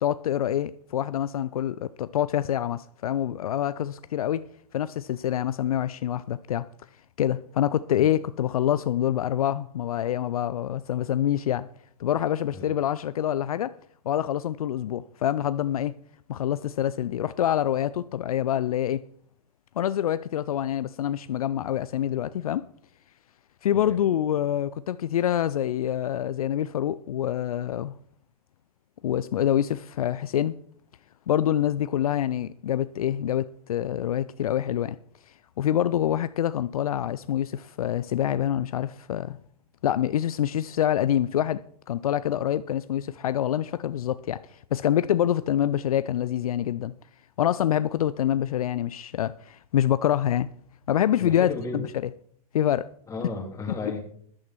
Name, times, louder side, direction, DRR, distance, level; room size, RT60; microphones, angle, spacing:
voice 1, 0.0-4.5 4.7-6.7 7.2-11.7 12.0-13.7 14.1-16.0 16.3-19.0 19.8-22.7 23.6-27.9 29.0-30.6 31.3-35.0 35.3-39.4 39.8-46.9 47.4-50.5 50.9-51.9 52.5-52.9, left 11 dB, 65° left, 0.5 m, -26 dB
voice 2, 51.2-51.9 53.1-54.0, left 3 dB, 15° left, 3.4 m, -34 dB
14.0 x 11.5 x 4.4 m
figure-of-eight pair, 100°, 20 cm